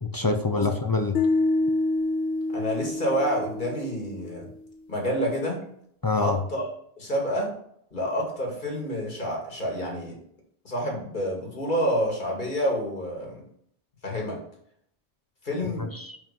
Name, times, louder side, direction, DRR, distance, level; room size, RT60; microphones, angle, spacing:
voice 1, 0.0-1.1 6.0-6.4 15.6-16.2, left 3 dB, 30° left, 6 dB, 0.4 m, -26 dB
sound 1, 1.1-4.3, left 2 dB, 75° left, 1.0 m, -27 dB
voice 2, 2.5-4.5 4.9-5.6 6.2-6.7 7.0-7.5 7.9-10.2 10.6-13.4 14.0-14.4 15.4-15.9, equal, 45° left, -1 dB, 2.3 m, -28 dB
5.5 x 5.2 x 5.4 m, 0.69 s
omnidirectional pair, 1.1 m